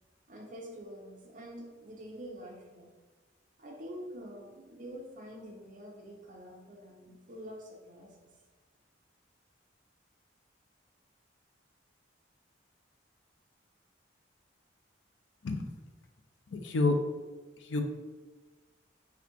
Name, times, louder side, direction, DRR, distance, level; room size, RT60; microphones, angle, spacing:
voice 1, 0.3-2.9 3.6-8.3, equal, 45° right, -1 dB, 0.8 m, -46 dB
voice 2, 16.5-17.0 17.6-17.8, left 3 dB, 75° left, 5 dB, 0.5 m, -28 dB
4.1 x 2.8 x 4.4 m, 1.3 s
head